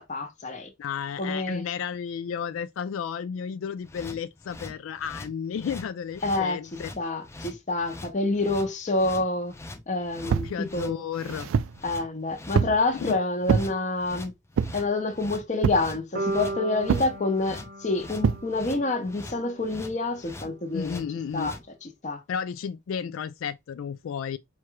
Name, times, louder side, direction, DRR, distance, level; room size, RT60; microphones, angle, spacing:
voice 1, 0.0-0.7 1.2-1.6 6.2-6.6 7.0-9.5 9.9-11.0 11.8-14.3 14.7-21.0 21.3-22.2, left 2 dB, 35° left, 0.9 m, -28 dB
voice 2, 0.8-6.9 10.2-11.5 12.9-13.2 20.7-21.5 22.3-24.4, left 7 dB, 80° left, 0.3 m, -33 dB
sound 1, 3.8-21.6, left 2 dB, 15° left, 0.5 m, -43 dB
sound 2, 10.3-10.6 11.1-11.8 12.5-12.8 13.5-13.7 14.6-14.9 15.6-15.9 16.9-17.2 18.2-18.5, right 6 dB, 85° right, 0.3 m, -25 dB
sound 3, 16.2-20.3, right 2 dB, 45° right, 0.8 m, -36 dB
4.5 x 2.4 x 4.6 m
head